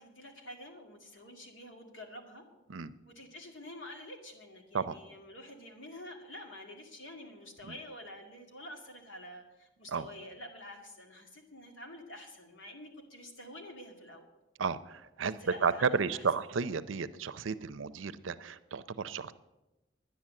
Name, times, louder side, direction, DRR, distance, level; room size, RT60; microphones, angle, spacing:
voice 1, 0.0-2.4 3.1-14.3 15.2-16.3, left 1 dB, 80° left, 2 dB, 2.4 m, -48 dB
voice 2, 14.6-19.3, right 5 dB, 85° right, 14 dB, 0.6 m, -32 dB
10.5 x 10.5 x 7.6 m, 1.0 s
head